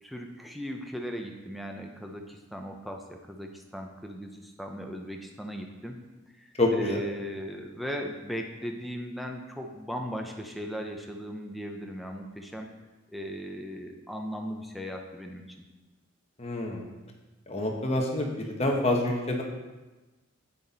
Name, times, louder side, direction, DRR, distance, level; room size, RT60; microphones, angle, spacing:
voice 1, 0.0-6.0 6.4-12.7 13.1-15.4, equal, ahead, 2 dB, 0.6 m, -38 dB
voice 2, 6.6-7.0 16.4-16.8 17.5-19.4, left 1 dB, 30° left, 1 dB, 1.1 m, -27 dB
8.8 x 6.2 x 4.1 m, 1.2 s
head